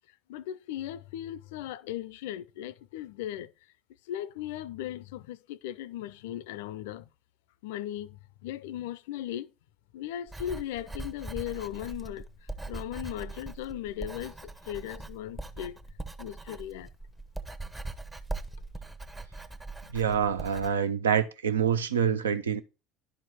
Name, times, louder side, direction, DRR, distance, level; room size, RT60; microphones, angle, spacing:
voice 1, 0.3-3.5 4.1-7.1 7.6-9.5 9.9-12.2 12.7-15.8 16.2-16.9, left 12 dB, 65° left, 0.4 m, -37 dB
Writing, 10.3-20.7, right 2 dB, 15° right, 0.8 m, -41 dB
voice 2, 19.9-22.6, right 7 dB, 75° right, 0.6 m, -26 dB
11.0 x 4.5 x 4.2 m
figure-of-eight pair, 60°, 0 cm